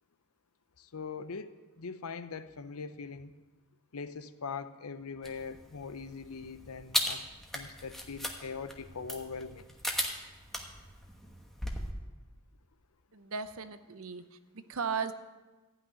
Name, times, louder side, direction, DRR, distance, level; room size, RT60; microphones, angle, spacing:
voice 1, 0.8-3.3 3.9-7.3 7.5-9.7, left 5 dB, 80° left, 12 dB, 0.7 m, -41 dB
sound 1, 5.2-11.9, left 1 dB, ahead, 1.1 m, -38 dB
voice 2, 13.1-15.1, right 6 dB, 70° right, 11 dB, 0.8 m, -36 dB
14.0 x 6.0 x 9.4 m, 1.2 s
head